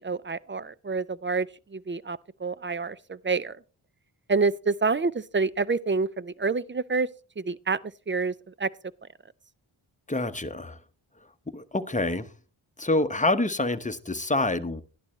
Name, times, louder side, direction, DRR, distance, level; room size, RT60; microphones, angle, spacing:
voice 1, 0.0-3.6 4.3-7.1 7.4-7.8 8.1-8.7, right 4 dB, 25° right, 0.5 m, -28 dB
voice 2, 10.1-10.8 11.5-12.3 12.8-14.8, left 2 dB, 15° left, 1.0 m, -26 dB
12.5 x 11.0 x 3.1 m
cardioid pair, 40°, 48 cm